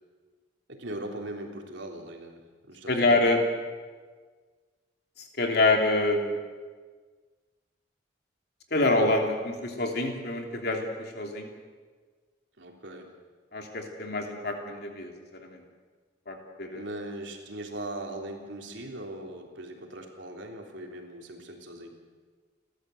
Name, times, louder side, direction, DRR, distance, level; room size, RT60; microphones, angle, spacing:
voice 1, 0.7-2.4 2.7-3.2 12.6-13.1 16.7-21.9, right 1 dB, 80° right, 1 dB, 3.6 m, -39 dB
voice 2, 2.9-3.4 5.2-6.4 8.7-11.5 13.5-15.6 16.3-16.8, left 2 dB, 60° left, 2 dB, 3.1 m, -26 dB
30.0 x 13.5 x 7.9 m, 1.5 s
head